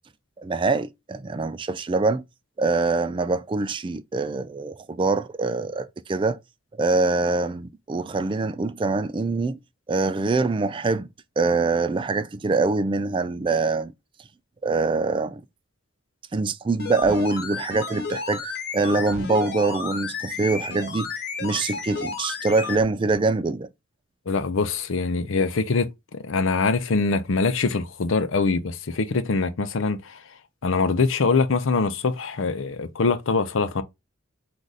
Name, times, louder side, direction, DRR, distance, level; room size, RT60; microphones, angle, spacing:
voice 1, 0.4-2.2 2.6-6.4 6.8-9.6 9.9-11.1 11.4-13.9 14.6-15.4 16.3-21.1 21.4-23.7, right 3 dB, 25° right, 0.3 m, -24 dB
sound 1, 16.7-22.8 23.1-23.2, left 4 dB, 50° left, 1.2 m, -32 dB
voice 2, 24.3-30.2 30.6-33.8, left 4 dB, 75° left, 0.6 m, -23 dB
4.7 x 2.6 x 3.9 m
head